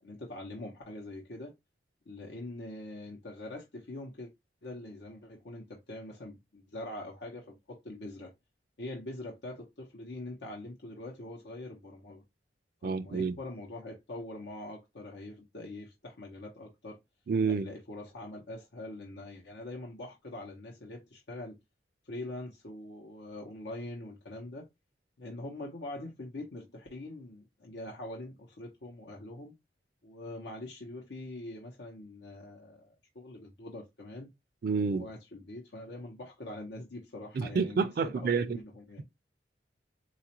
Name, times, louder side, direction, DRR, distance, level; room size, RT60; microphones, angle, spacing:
voice 1, 0.0-1.5 2.1-4.3 4.6-8.3 8.8-12.2 12.8-17.0 17.5-21.6 22.0-24.7 25.2-29.5 30.0-34.3 34.9-39.0, left 1 dB, 80° left, 0.8 m, -43 dB
voice 2, 12.8-13.4 17.3-17.7 34.6-35.1 37.3-38.6, right 5 dB, 55° right, 0.4 m, -29 dB
4.1 x 2.4 x 2.8 m
head